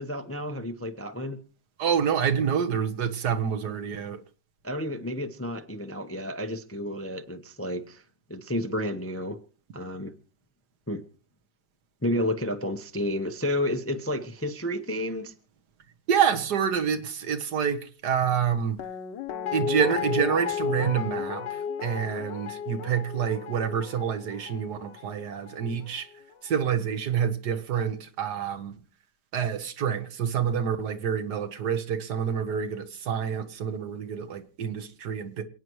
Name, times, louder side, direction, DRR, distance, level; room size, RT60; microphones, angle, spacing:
voice 1, 0.0-1.4 4.6-8.0 8.3-9.4 9.7-10.1 10.9-11.0 12.0-15.3, left 1 dB, 10° left, 0.6 m, -31 dB
voice 2, 1.8-4.2 16.1-18.8 19.5-26.1 26.4-28.7 29.3-35.4, right 7 dB, 65° right, 1.7 m, -27 dB
Guitar, 18.8-25.8 26.1-26.2, left 7 dB, 90° left, 1.6 m, -33 dB
28.0 x 9.4 x 3.1 m
omnidirectional pair, 1.9 m